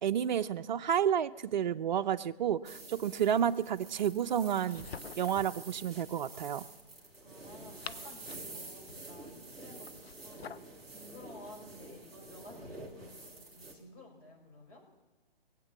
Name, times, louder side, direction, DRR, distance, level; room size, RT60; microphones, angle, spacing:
voice 1, 0.0-4.9 5.2-6.6, right 9 dB, 50° right, 9 dB, 0.7 m, -30 dB
sound 1, 2.6-13.7, right 2 dB, ahead, 2.3 m, -48 dB
sound 2, 4.5-5.5 7.5-8.6 9.8-10.7, left 6 dB, 85° left, 0.8 m, -47 dB
voice 2, 7.2-14.8, left 1 dB, 35° left, -2 dB, 5.5 m, -53 dB
21.5 x 8.4 x 7.1 m, 1.2 s
hypercardioid pair, 150°, 30 cm